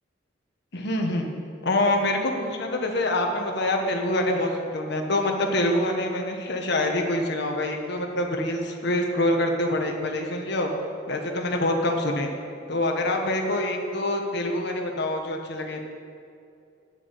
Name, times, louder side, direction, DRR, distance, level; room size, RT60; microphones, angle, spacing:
voice 1, 0.7-1.3 1.6-10.7 11.0-12.3 12.7-15.8, left 1 dB, 60° left, 2 dB, 1.4 m, -25 dB
10.5 x 7.2 x 8.2 m, 2.5 s
head